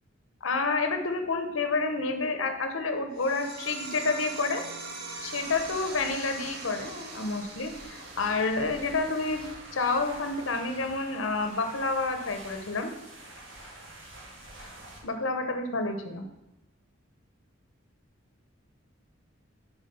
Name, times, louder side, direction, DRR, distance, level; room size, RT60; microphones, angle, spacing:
voice 1, 0.4-4.6 5.2-9.4 9.7-12.9 15.0-16.2, left 3 dB, 85° left, 6 dB, 0.9 m, -29 dB
sound 1, 3.1-14.2, right 3 dB, 55° right, 1.1 m, -44 dB
sound 2, 5.1-15.0, right 1 dB, 70° right, 2.2 m, -48 dB
6.5 x 4.8 x 6.8 m, 0.91 s
head